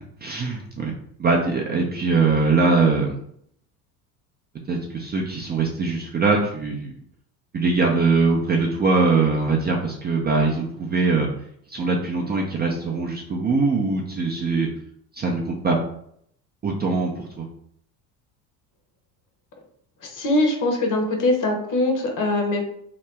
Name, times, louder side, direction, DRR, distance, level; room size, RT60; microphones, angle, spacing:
voice 1, 0.2-0.9 1.2-3.2 4.7-6.9 7.5-11.3 11.7-14.7 15.1-15.8 16.6-17.5, right 4 dB, 20° right, -1 dB, 0.4 m, -22 dB
voice 2, 20.0-22.7, left 2 dB, 40° left, 2 dB, 1.0 m, -22 dB
2.9 x 2.1 x 3.3 m, 0.69 s
supercardioid pair, 80°, 46 cm